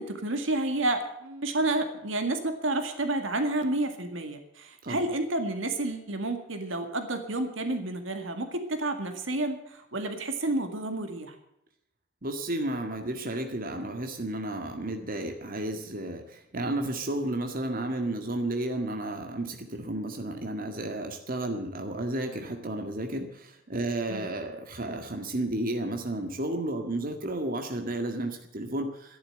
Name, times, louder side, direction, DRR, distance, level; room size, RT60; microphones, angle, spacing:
voice 1, 0.0-11.4 24.1-24.3, right 2 dB, 70° right, 7 dB, 2.0 m, -30 dB
voice 2, 12.2-29.2, right 1 dB, 45° right, 4 dB, 1.9 m, -32 dB
13.5 x 11.0 x 7.9 m, 0.82 s
head